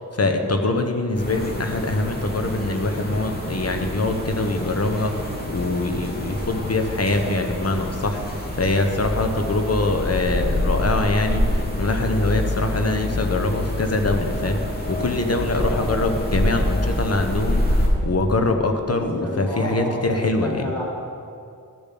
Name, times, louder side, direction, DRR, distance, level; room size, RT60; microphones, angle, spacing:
voice 1, 0.1-20.7, left 2 dB, 50° left, 5 dB, 1.2 m, -23 dB
sound 1, 1.1-17.9, left 1 dB, 30° left, 2.5 m, -26 dB
voice 2, 15.7-16.0 18.9-20.8, equal, 5° left, -8 dB, 3.0 m, -31 dB
13.5 x 7.2 x 6.0 m, 2.4 s
wide cardioid pair, 65°, 33 cm